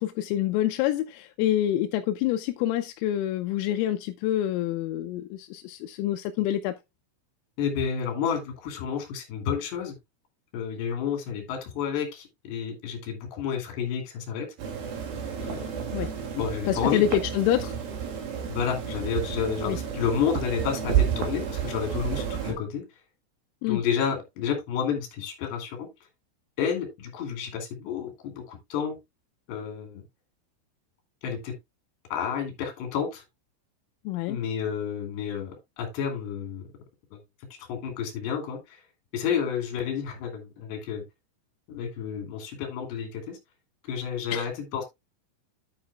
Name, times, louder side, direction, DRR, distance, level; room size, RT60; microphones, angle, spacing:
voice 1, 0.0-6.8 15.9-16.1 16.7-17.7 19.7-19.8 23.6-23.8 34.1-34.4 44.3-44.5, left 12 dB, 85° left, 3.2 m, -27 dB
voice 2, 7.6-10.0 10.5-14.5 15.4-15.7 16.3-17.0 18.5-23.0 23.7-25.9 26.6-29.0 29.5-30.0 31.2-31.6 32.1-33.2 34.3-36.7 37.1-37.2 37.5-38.8 39.1-41.0 41.7-43.4 43.8-44.8, left 7 dB, 60° left, 4.5 m, -30 dB
sound 1, 14.6-22.5, right 8 dB, 55° right, 3.6 m, -31 dB
10.5 x 8.6 x 2.3 m
omnidirectional pair, 5.9 m